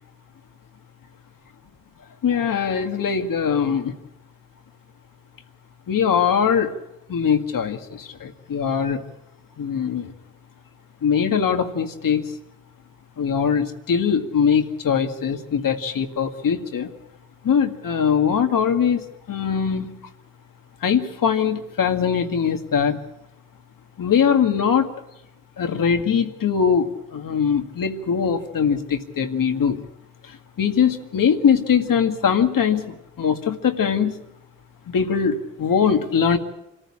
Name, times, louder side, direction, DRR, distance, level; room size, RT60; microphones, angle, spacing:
voice 1, 2.2-3.9 5.9-6.7 7.1-9.0 9.6-10.1 11.0-12.2 13.2-16.9 17.4-19.0 19.3-19.9 20.8-23.0 24.0-24.9 25.6-29.8 30.6-32.9 33.2-34.1 34.9-36.4, left 7 dB, 70° left, 6 dB, 2.0 m, -21 dB
26.0 x 14.5 x 8.7 m, 0.91 s
cardioid pair, 85°, 34 cm